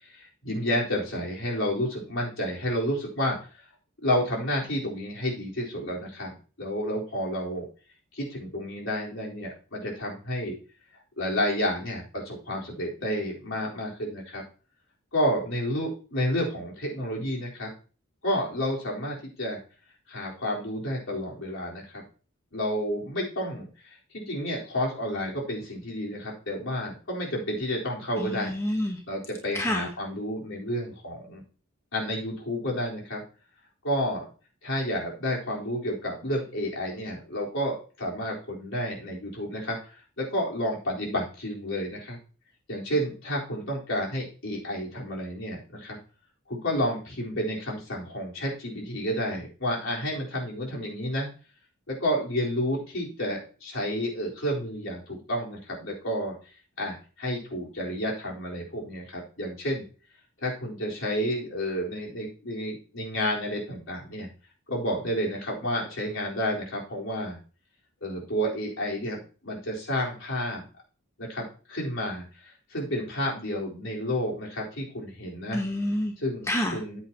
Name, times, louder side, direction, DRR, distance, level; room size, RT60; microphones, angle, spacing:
voice 1, 0.0-3.4 4.0-7.7 8.1-10.6 11.2-14.4 15.1-17.7 18.2-19.6 20.1-22.0 22.5-28.5 29.0-31.4 31.9-33.2 33.8-34.3 34.6-42.2 42.7-46.0 46.5-51.3 51.9-56.3 56.8-59.8 60.4-64.3 64.7-67.4 68.0-70.6 71.2-75.6 76.2-77.0, equal, 65° left, -4 dB, 4.2 m, -30 dB
voice 2, 28.2-29.0 29.5-29.9 75.5-76.1 76.5-76.8, left 1 dB, 15° left, 2 dB, 1.2 m, -28 dB
14.0 x 8.4 x 3.0 m, 0.37 s
head